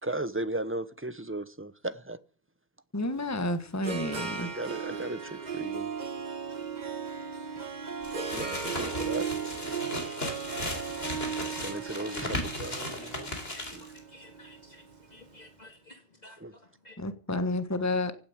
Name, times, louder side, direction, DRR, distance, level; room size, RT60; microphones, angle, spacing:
voice 1, 0.0-2.2 4.4-5.9 8.3-9.3 11.5-13.3 13.7-13.8 16.4-16.5, right 2 dB, 15° right, 0.9 m, -36 dB
voice 2, 2.9-4.5 17.0-18.1, left 2 dB, 15° left, 1.4 m, -30 dB
Harp, 3.2-15.3, right 6 dB, 45° right, 1.5 m, -37 dB
sound 1, 8.0-14.0, left 1 dB, 75° left, 4.2 m, -36 dB
voice 3, 14.1-14.8 15.1-16.4 16.8-17.0, left 1 dB, 45° left, 2.2 m, -52 dB
16.5 x 9.4 x 8.7 m
omnidirectional pair, 1.0 m